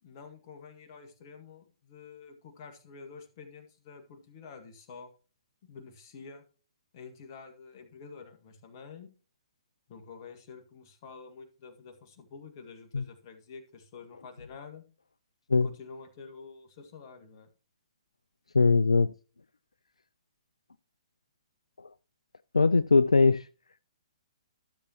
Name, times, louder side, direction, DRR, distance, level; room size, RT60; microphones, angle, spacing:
voice 1, 0.0-5.1 5.6-6.4 6.9-9.1 9.9-14.8 15.5-17.5, left 5 dB, 40° left, 1.7 m, -48 dB
voice 2, 18.5-19.1 22.5-23.5, left 4 dB, 85° left, 0.3 m, -21 dB
13.0 x 7.1 x 2.9 m
figure-of-eight pair, 125°, 3 cm